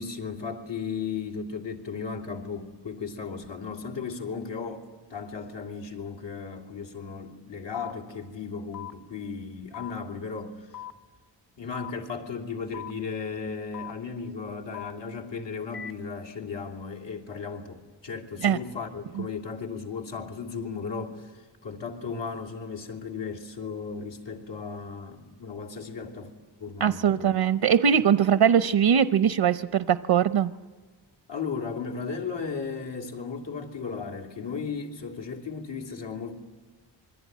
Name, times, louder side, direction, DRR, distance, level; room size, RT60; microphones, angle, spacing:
voice 1, 0.0-10.8 11.6-26.3 26.6-27.4 31.3-36.3, left 5 dB, 80° left, 1 dB, 3.0 m, -35 dB
sound 1, 7.7-7.9 8.7-8.9 9.7-9.9 10.7-10.9 11.7-11.9 12.7-12.9 13.7-13.9 14.7-14.9 15.7-15.9, left 11 dB, 50° left, 2.1 m, -39 dB
voice 2, 26.8-30.5, right 8 dB, 75° right, 12 dB, 0.8 m, -21 dB
27.0 x 23.0 x 9.4 m, 1.4 s
wide cardioid pair, 105°, 44 cm